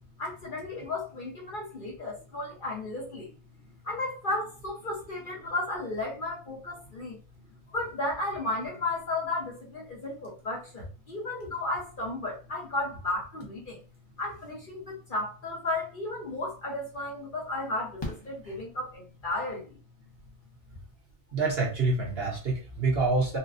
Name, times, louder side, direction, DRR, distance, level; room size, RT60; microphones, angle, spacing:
voice 1, 0.2-3.3 3.8-7.2 7.7-13.8 14.2-19.7, left 2 dB, 40° left, -3 dB, 1.0 m, -34 dB
Fireworks, 18.0-19.3 21.1-21.2 21.4-21.5, left 2 dB, 25° left, 0.6 m, -41 dB
voice 2, 21.3-23.4, right 3 dB, 50° right, -1 dB, 1.0 m, -27 dB
4.1 x 2.2 x 2.5 m, 0.35 s
omnidirectional pair, 1.4 m